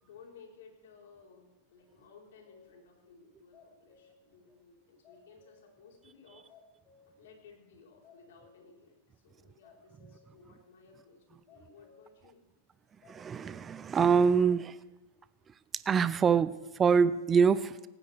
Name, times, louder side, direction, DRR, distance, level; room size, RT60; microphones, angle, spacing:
voice 1, 0.0-6.6 7.1-12.4, left 5 dB, 75° left, -1 dB, 4.4 m, -57 dB
sound 1, 2.5-2.8 3.3-4.3 4.6-4.7 5.0-5.8 6.2-6.3 6.5-7.3 7.6-7.7 8.0-8.8 9.1-9.3 9.6-10.4 10.7-10.9 11.5-12.2 13.0-13.7 14.5-14.6, left 6 dB, 30° left, 2.1 m, -61 dB
voice 2, 13.1-14.8 15.9-17.9, right 6 dB, 20° right, 15 dB, 0.4 m, -25 dB
18.0 x 15.5 x 3.5 m, 1.0 s
supercardioid pair, 145°, 0 cm